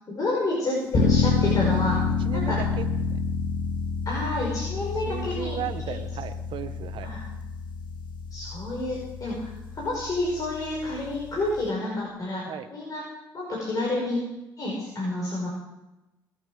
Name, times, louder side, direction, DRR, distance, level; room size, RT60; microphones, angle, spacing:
voice 1, 0.1-2.0 2.3-2.6 4.1-5.6 5.8-5.9 7.0-7.2 8.3-12.4 12.7-13.0 13.3-14.3 14.6-15.5, left 2 dB, 40° left, -4 dB, 5.4 m, -29 dB
sound 1, 0.9-11.7, left 5 dB, 60° left, 2.5 m, -28 dB
voice 2, 2.2-2.9 5.1-7.1 12.5-12.7, right 10 dB, 70° right, 9 dB, 1.2 m, -35 dB
22.0 x 9.0 x 4.9 m, 1.0 s
supercardioid pair, 80°, 9 cm